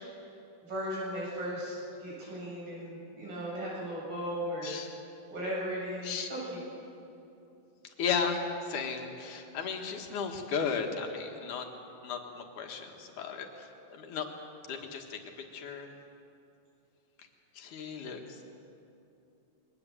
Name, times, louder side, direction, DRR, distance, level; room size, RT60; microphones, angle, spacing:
voice 1, 0.6-4.7 5.3-6.6, equal, 80° right, -5 dB, 9.5 m, -36 dB
voice 2, 4.6-5.0 6.0-6.3 7.8-11.7 12.0-14.3 14.7-16.0 17.2-17.3 17.5-18.6, left 5 dB, 70° left, 3 dB, 3.1 m, -35 dB
22.0 x 19.5 x 7.8 m, 2.7 s
omnidirectional pair, 3.9 m